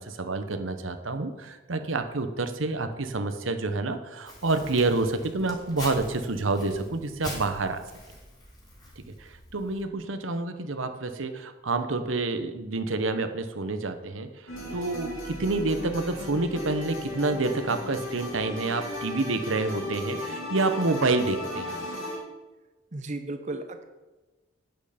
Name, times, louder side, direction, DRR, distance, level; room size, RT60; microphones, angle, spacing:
voice 1, 0.0-7.8 9.0-21.8, right 3 dB, 80° right, 8 dB, 1.1 m, -28 dB
Crumpling crinkling, 4.2-9.8, left 1 dB, 20° left, 3.6 m, -44 dB
sound 1, 14.5-22.2, left 1 dB, 90° left, 4.3 m, -36 dB
voice 2, 22.9-23.8, right 2 dB, 35° right, 7 dB, 0.7 m, -34 dB
11.0 x 9.2 x 5.1 m, 1.2 s
head